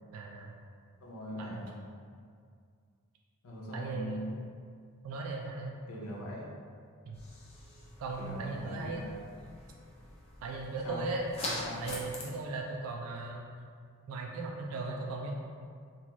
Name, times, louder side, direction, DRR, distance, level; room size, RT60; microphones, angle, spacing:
voice 1, 0.1-0.5 1.4-1.6 3.7-4.3 5.0-5.8 7.1-7.2 8.0-9.1 10.4-11.3 11.8-13.5 14.1-15.3, right 3 dB, 75° right, 0 dB, 0.3 m, -37 dB
voice 2, 1.0-1.8 3.4-4.4 5.9-6.5 8.2-9.2 10.8-11.1 11.4-11.8, equal, 80° left, -4 dB, 0.6 m, -41 dB
sound 1, 7.1-12.2, left 1 dB, 30° left, 0.4 m, -43 dB
2.6 x 2.3 x 2.9 m, 2.2 s
head